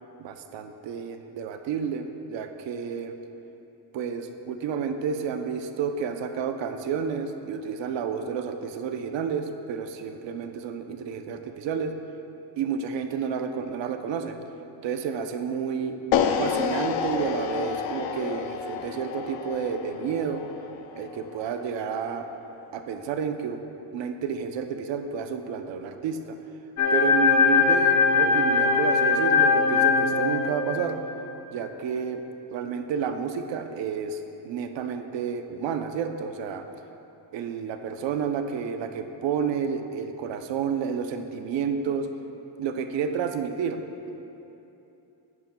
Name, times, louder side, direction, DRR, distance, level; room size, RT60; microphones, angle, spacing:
voice 1, 0.2-3.2 3.9-11.9 12.6-14.4 14.8-16.0 16.4-20.4 21.0-22.3 22.7-23.6 23.9-26.4 26.9-31.0 31.5-32.2 32.5-36.6 37.3-42.1 42.6-44.1, right 6 dB, 75° right, 7 dB, 0.7 m, -30 dB
sound 1, 16.1-22.3, left 7 dB, 80° left, 0.6 m, -29 dB
sound 2, 26.8-31.2, left 5 dB, 40° left, 0.9 m, -21 dB
10.5 x 9.6 x 2.2 m, 2.9 s
cardioid pair, 155°, 44 cm